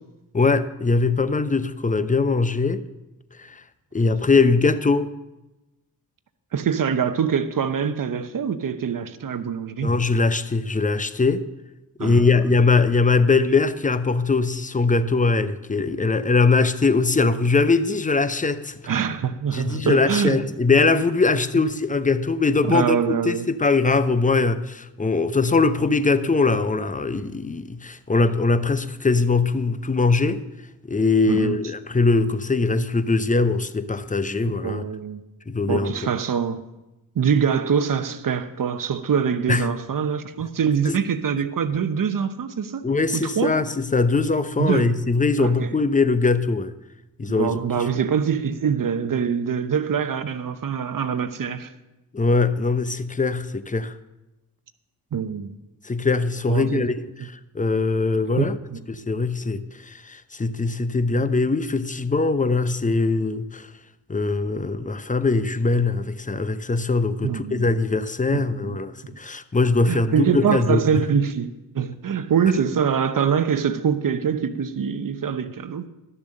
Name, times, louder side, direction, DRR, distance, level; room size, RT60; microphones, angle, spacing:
voice 1, 0.3-2.8 3.4-3.6 3.9-5.1 9.8-11.4 12.0-18.8 19.5-30.4 30.9-34.8 35.5-36.0 39.5-39.7 40.9-41.0 42.8-46.7 47.2-47.8 52.1-53.9 55.8-56.9 57.2-58.6 58.9-63.7 64.1-70.8, left 3 dB, 20° left, 0.8 m, -21 dB
voice 2, 6.5-9.9 12.0-12.2 18.9-20.4 22.6-23.5 31.3-31.6 34.6-35.2 35.7-36.6 37.1-42.9 43.1-43.6 44.6-44.9 45.4-45.7 47.3-51.7 55.1-55.5 56.5-56.8 58.4-58.8 67.2-67.7 68.3-68.8 69.1-69.2 69.9-75.9, right 7 dB, 50° right, 0.9 m, -24 dB
12.0 x 7.0 x 6.5 m
supercardioid pair, 45°, 43 cm